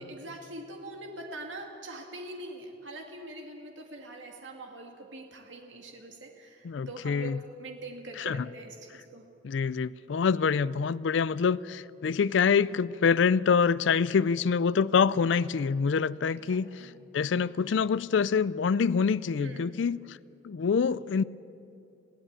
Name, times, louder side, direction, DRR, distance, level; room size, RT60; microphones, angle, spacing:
voice 1, 0.0-9.2 16.3-16.9 19.4-19.8, right 1 dB, 75° right, 2.2 m, -43 dB
voice 2, 6.6-7.4 8.2-8.5 9.4-20.2 20.4-21.2, left 6 dB, 70° left, 0.4 m, -26 dB
22.0 x 16.0 x 8.8 m
head